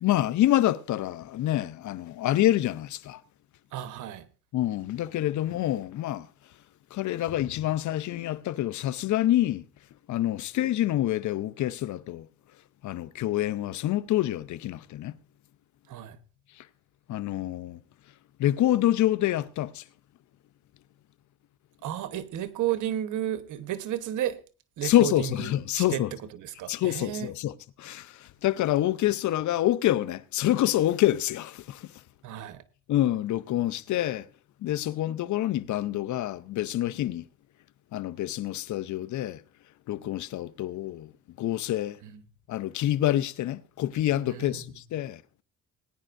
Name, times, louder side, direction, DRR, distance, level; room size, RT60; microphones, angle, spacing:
voice 1, 0.0-3.2 4.5-6.3 6.9-9.6 10.1-12.3 12.8-15.1 16.6-16.7 17.1-17.8 18.4-19.8 24.8-26.1 26.7-27.5 27.8-31.9 32.9-34.3 34.6-37.2 37.9-39.4 39.9-41.1 41.4-42.0 42.5-45.2, left 13 dB, 70° left, 0.7 m, -27 dB
voice 2, 3.7-4.3 15.9-16.2 21.8-24.4 24.8-26.0 26.3-27.3 32.2-32.6 42.0-42.2 44.3-44.6, right 12 dB, 80° right, 1.2 m, -33 dB
19.0 x 10.0 x 2.6 m
cardioid pair, 90°, 30 cm